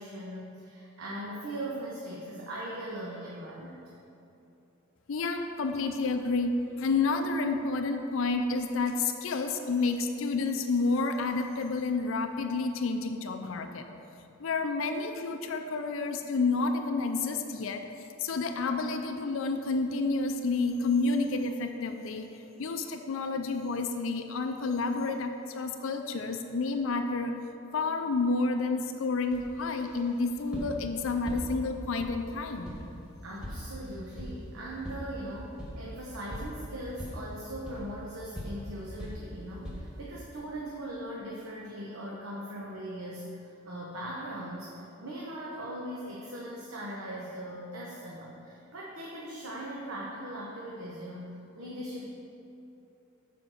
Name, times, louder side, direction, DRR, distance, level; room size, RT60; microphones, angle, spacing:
voice 1, 0.0-3.9 33.2-52.0, right 1 dB, 90° right, -4 dB, 1.0 m, -40 dB
voice 2, 5.1-13.8 14.4-17.8 18.2-22.3 22.6-27.4 27.7-32.7, left 3 dB, 65° left, 5 dB, 0.4 m, -30 dB
sound 1, 29.3-40.1, equal, 5° right, 1.4 m, -42 dB
6.9 x 4.6 x 6.3 m, 2.9 s
head